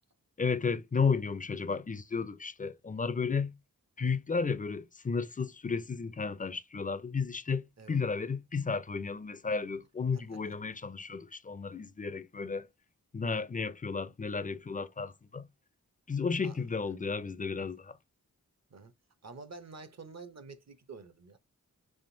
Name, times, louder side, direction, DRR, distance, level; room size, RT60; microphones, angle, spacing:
voice 1, 0.4-3.5 4.0-12.7 13.1-15.5 16.1-18.0, left 5 dB, 25° left, 0.4 m, -33 dB
voice 2, 10.1-10.6 16.4-17.0 18.7-18.9 19.2-21.4, right 4 dB, 50° right, 0.7 m, -49 dB
3.5 x 2.5 x 2.5 m
cardioid pair, 45°, 35 cm